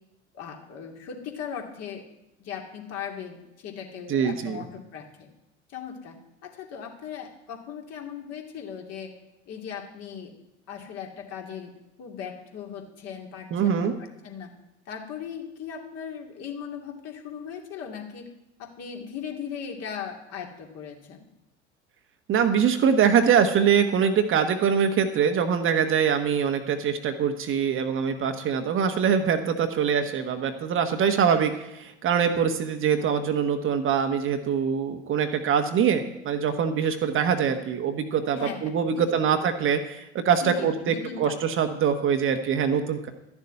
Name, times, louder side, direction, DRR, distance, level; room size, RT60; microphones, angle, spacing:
voice 1, 0.3-2.0 2.4-5.3 5.7-6.2 6.4-9.1 9.5-10.3 10.7-11.7 12.0-14.5 14.9-18.3 18.6-21.2 38.3-39.0 40.4-41.4, left 7 dB, 45° left, 1 dB, 2.6 m, -38 dB
voice 2, 4.1-4.6 13.5-13.9 22.3-43.1, right 7 dB, 35° right, 7 dB, 1.3 m, -23 dB
11.5 x 7.2 x 9.9 m, 0.91 s
figure-of-eight pair, 75°, 35 cm